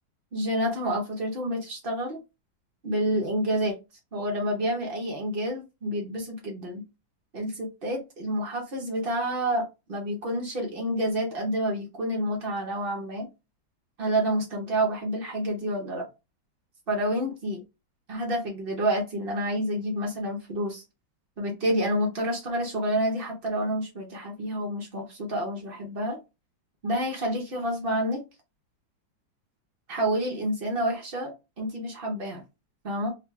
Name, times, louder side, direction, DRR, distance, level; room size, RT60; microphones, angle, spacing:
voice 1, 0.3-2.2 2.8-3.8 4.1-6.8 7.3-13.3 14.0-16.1 16.9-17.6 18.1-20.8 21.4-26.2 26.8-28.2 29.9-32.4 32.8-33.1, equal, 90° right, 1 dB, 0.5 m, -29 dB
4.0 x 2.2 x 3.1 m, 0.26 s
omnidirectional pair, 2.2 m